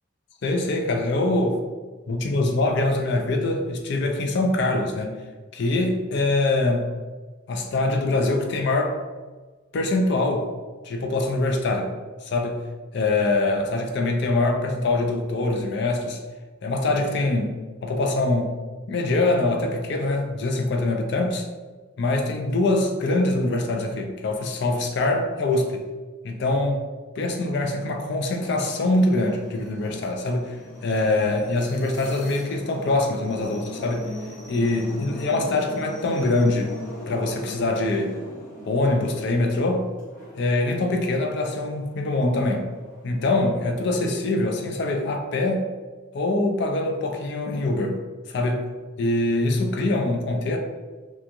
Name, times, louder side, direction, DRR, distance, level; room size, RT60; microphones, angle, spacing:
voice 1, 0.4-1.6 2.1-5.2 5.5-6.9 7.5-9.0 9.7-10.5 10.8-11.9 12.2-12.6 12.9-16.2 16.6-18.6 18.9-21.5 22.0-25.8 26.2-26.9 27.2-30.6 30.8-34.1 34.5-36.7 37.1-38.1 38.7-39.9 40.4-42.7 43.0-45.7 46.1-48.0 48.3-48.7 49.0-50.6, left 2 dB, 60° left, 3 dB, 0.4 m, -23 dB
sound 1, 28.4-41.1 41.5-44.7, left 1 dB, 45° left, 0.8 m, -41 dB
3.0 x 2.2 x 2.5 m, 1.3 s
head